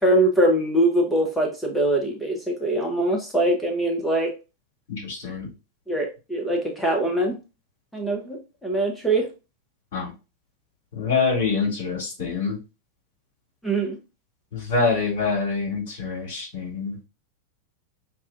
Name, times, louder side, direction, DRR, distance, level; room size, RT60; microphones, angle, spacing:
voice 1, 0.0-4.3 5.9-7.4 7.9-9.3 13.6-14.0, right 1 dB, 5° left, 1 dB, 1.0 m, -23 dB
voice 2, 5.0-5.5 9.9-10.1 10.9-12.6 14.5-17.0, left 4 dB, 50° left, -3 dB, 2.5 m, -25 dB
5.7 x 2.4 x 2.5 m, 0.28 s
figure-of-eight pair, 90°, 0 cm